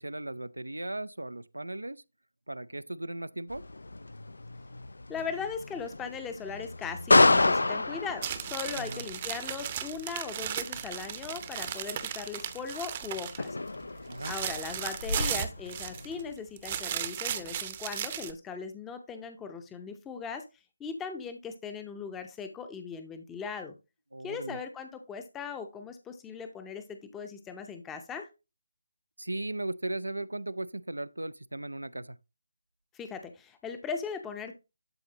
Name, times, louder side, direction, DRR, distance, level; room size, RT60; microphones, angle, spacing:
voice 1, 0.0-2.0 2.5-3.7 8.8-9.0 14.1-14.3 24.1-24.6 29.2-32.2, right 1 dB, 85° right, 0.4 m, -37 dB
sound 1, 3.5-16.3, left 2 dB, 70° left, 0.4 m, -31 dB
voice 2, 5.1-13.6 14.2-20.4 20.8-23.7 24.2-28.3 32.9-34.5, left 6 dB, 10° left, 0.7 m, -39 dB
sound 2, 8.2-13.5 13.8-16.2 16.6-18.3, right 9 dB, 30° right, 0.7 m, -36 dB
12.0 x 4.0 x 2.9 m
figure-of-eight pair, 155°, 0 cm